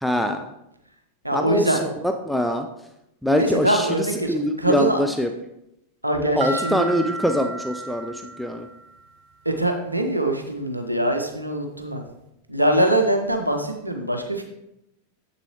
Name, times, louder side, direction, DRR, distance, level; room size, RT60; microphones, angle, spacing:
voice 1, 0.0-0.5 1.3-2.7 3.2-5.3 6.4-8.7, equal, ahead, 5 dB, 0.4 m, -24 dB
voice 2, 1.2-1.8 3.4-5.0 6.0-6.9 9.4-12.0 12.5-14.4, right 1 dB, 85° right, 5 dB, 0.7 m, -23 dB
sound 1, 6.4-9.1, right 1 dB, 50° right, 0.8 m, -33 dB
7.6 x 6.7 x 3.0 m, 0.85 s
figure-of-eight pair, 90°, 0 cm